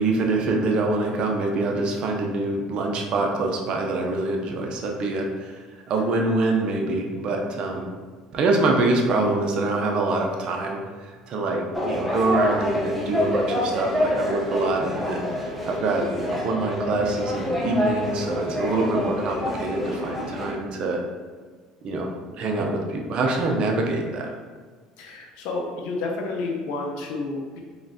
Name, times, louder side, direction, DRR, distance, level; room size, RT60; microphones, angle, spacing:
voice 1, 0.0-7.9 8.3-21.0 21.8-24.4, right 2 dB, 50° right, 1 dB, 0.6 m, -25 dB
sound 1, 11.7-20.5, left 1 dB, ahead, 0.8 m, -27 dB
voice 2, 25.0-27.6, left 3 dB, 75° left, 0 dB, 0.7 m, -30 dB
3.9 x 3.1 x 2.7 m, 1.5 s
supercardioid pair, 105°, 2 cm